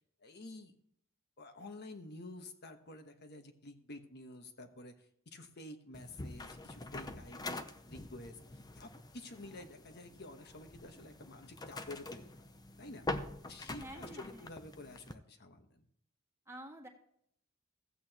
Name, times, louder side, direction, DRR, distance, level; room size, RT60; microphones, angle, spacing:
voice 1, 0.2-0.7 1.4-4.9 5.3-12.3 12.8-13.1 13.5-15.8, left 2 dB, 50° left, 7 dB, 1.2 m, -50 dB
sound 1, 5.9-15.1, left 2 dB, 20° left, 0.6 m, -45 dB
voice 2, 13.8-14.5 16.4-16.9, right 1 dB, 15° right, 1 dB, 1.7 m, -49 dB
15.0 x 8.6 x 2.9 m, 0.71 s
head